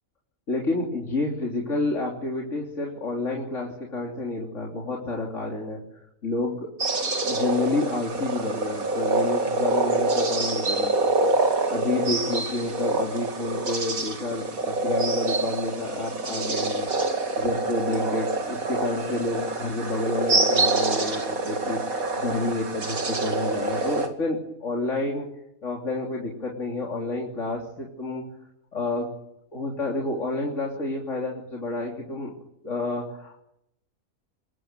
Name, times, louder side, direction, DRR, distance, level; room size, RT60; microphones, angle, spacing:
voice 1, 0.5-5.8 6.2-6.7 7.3-25.3 25.6-28.2 28.7-29.1 29.5-32.3 32.6-33.4, left 2 dB, 60° left, -2 dB, 3.7 m, -29 dB
sound 1, 6.8-24.1, right 3 dB, 75° right, 2.9 m, -26 dB
25.0 x 21.5 x 9.2 m, 0.81 s
omnidirectional pair, 1.5 m